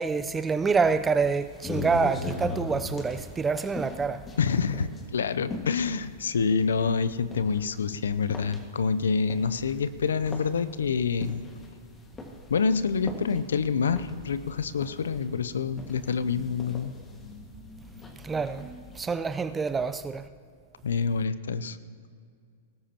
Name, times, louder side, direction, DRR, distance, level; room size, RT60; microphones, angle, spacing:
voice 1, 0.0-4.2 18.2-18.7 19.0-20.2, right 5 dB, 15° right, 0.6 m, -26 dB
sound 1, 0.8-19.0, left 2 dB, 20° left, 1.8 m, -41 dB
voice 2, 4.4-11.4 12.5-16.9 20.8-21.8, left 5 dB, 80° left, 0.6 m, -27 dB
20.5 x 13.0 x 3.0 m
hypercardioid pair, 110°, 0 cm